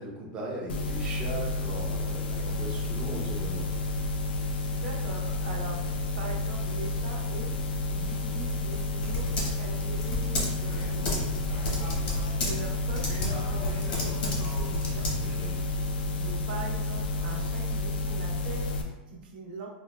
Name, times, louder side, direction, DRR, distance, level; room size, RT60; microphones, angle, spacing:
voice 1, 0.0-3.7 15.1-15.7, right 1 dB, 20° right, -3 dB, 0.6 m, -38 dB
sound 1, 0.7-18.8, left 2 dB, 85° left, 0.5 m, -31 dB
voice 2, 4.4-5.9 6.2-15.1 15.4-15.6 16.2-19.7, right 3 dB, 85° right, -2 dB, 0.8 m, -42 dB
Typing, 8.1-15.6, left 1 dB, 65° left, 1.0 m, -33 dB
4.9 x 2.2 x 2.2 m, 1.1 s
supercardioid pair, 160°, 5 cm